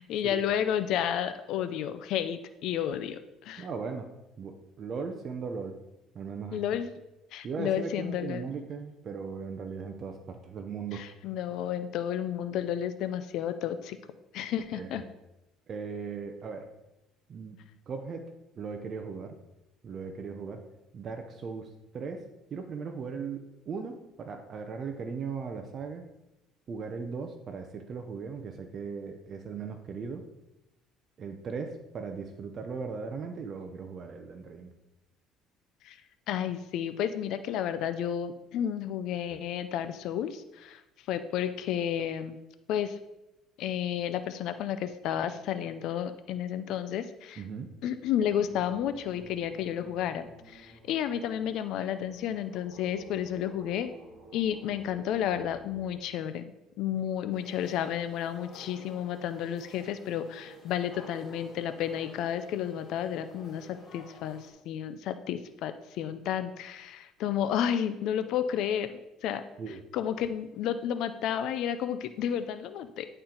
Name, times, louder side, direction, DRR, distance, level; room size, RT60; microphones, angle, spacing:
voice 1, 0.0-3.7 6.5-6.9 7.3-8.4 10.9-14.0 14.3-15.0 35.8-36.0 36.3-42.4 42.7-43.0 43.6-47.4 47.8-53.9 54.3-56.5 56.8-73.1, left 9 dB, 60° left, 10 dB, 0.4 m, -32 dB
voice 2, 3.6-4.1 4.4-5.8 6.1-6.6 7.4-11.0 14.7-15.0 15.7-16.7 17.3-17.6 17.9-18.3 18.6-19.4 19.8-20.7 20.9-26.0 26.7-30.2 31.2-34.7 47.4-47.7 69.6-69.8, right 5 dB, 35° right, 6 dB, 0.6 m, -38 dB
sound 1, 48.2-55.9, right 2 dB, 55° right, 2.0 m, -52 dB
sound 2, 57.3-64.5, left 1 dB, 30° left, 3.0 m, -51 dB
10.0 x 4.4 x 3.9 m, 0.93 s
cardioid pair, 145°, 0 cm